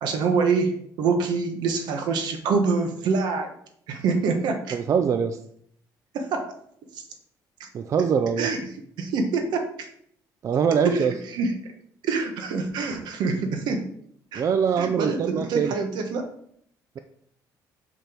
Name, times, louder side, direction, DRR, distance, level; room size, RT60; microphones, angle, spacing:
voice 1, 0.0-3.5 3.9-4.8 6.1-6.5 7.6-7.7 8.4-8.6 9.0-9.9 10.8-11.1 11.3-11.5 12.0-13.9 14.3-14.4 14.8-16.3, right 4 dB, 75° right, 5 dB, 1.2 m, -25 dB
voice 2, 4.7-5.4 7.7-8.5 10.4-11.1 14.3-15.8, right 7 dB, 45° right, 9 dB, 0.4 m, -23 dB
5.8 x 5.1 x 4.5 m, 0.67 s
cardioid pair, 125°, 7 cm